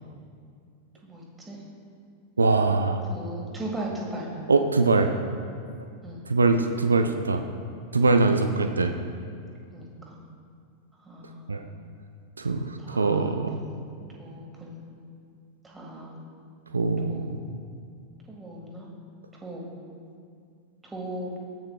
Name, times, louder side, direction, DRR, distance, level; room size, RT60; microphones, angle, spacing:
voice 1, 1.0-1.6 3.1-4.3 6.0-6.3 7.9-8.2 9.7-10.2 11.0-11.5 12.8-13.9 14.2-14.8 15.6-16.2 17.1-17.4 18.3-18.9 19.4-19.6 20.8-21.4, right 1 dB, 10° right, -2 dB, 1.8 m, -38 dB
voice 2, 2.4-3.0 4.5-5.1 6.3-7.4 7.9-8.9 11.5-11.6 12.4-13.6 16.7-17.4, right 3 dB, 75° right, 7 dB, 0.4 m, -22 dB
13.5 x 8.6 x 2.3 m, 2.3 s
figure-of-eight pair, 90°, 0 cm